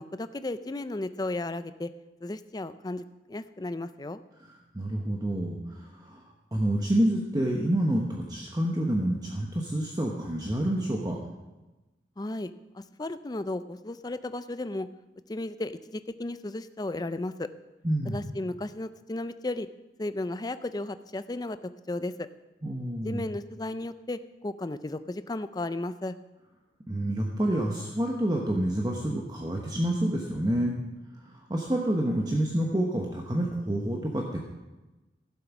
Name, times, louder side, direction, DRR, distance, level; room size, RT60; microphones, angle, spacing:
voice 1, 0.0-1.9 2.2-4.2 12.2-14.9 15.3-17.5 18.1-19.7 20.0-21.6 21.9-22.3 23.0-26.1, left 2 dB, 20° left, 12 dB, 0.4 m, -34 dB
voice 2, 4.4-6.2 6.5-11.2 17.8-18.2 22.6-23.2 26.9-30.8 31.2-34.4, right 1 dB, 20° right, 0 dB, 1.0 m, -28 dB
14.5 x 7.9 x 6.0 m, 1.1 s
head